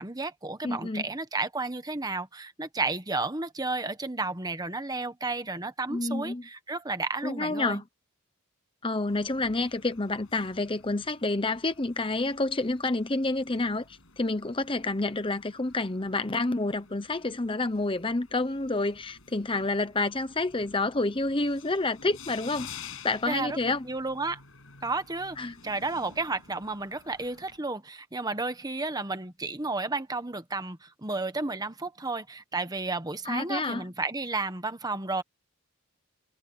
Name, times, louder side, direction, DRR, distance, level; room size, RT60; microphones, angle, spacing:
voice 1, 0.0-7.8 23.3-23.6 23.9-24.4 24.8-35.2, right 3 dB, 15° right, 1.2 m, -32 dB
voice 2, 0.6-1.0 5.9-6.4 7.2-7.8 8.8-22.7 23.0-23.9 25.4-25.6 33.2-33.8, left 2 dB, 25° left, 0.9 m, -29 dB
sound 1, 9.1-27.6, left 6 dB, 65° left, 7.9 m, -51 dB
head